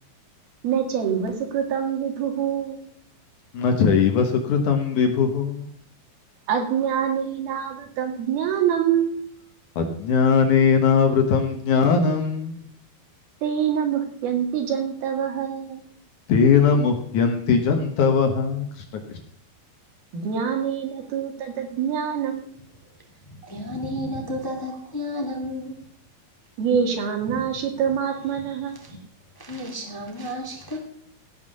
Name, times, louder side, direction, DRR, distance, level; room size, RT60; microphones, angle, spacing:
voice 1, 0.6-2.8 6.5-9.1 13.4-15.8 20.1-22.5 26.6-29.0, right 8 dB, 75° right, 4 dB, 3.8 m, -25 dB
voice 2, 3.5-5.7 9.8-12.6 16.3-19.2, left 6 dB, 60° left, 5 dB, 2.4 m, -20 dB
voice 3, 23.3-25.7 27.3-27.5 28.8-28.9 29.3-30.8, left 1 dB, 10° left, 1 dB, 1.5 m, -32 dB
16.5 x 6.0 x 6.9 m, 0.65 s
omnidirectional pair, 4.4 m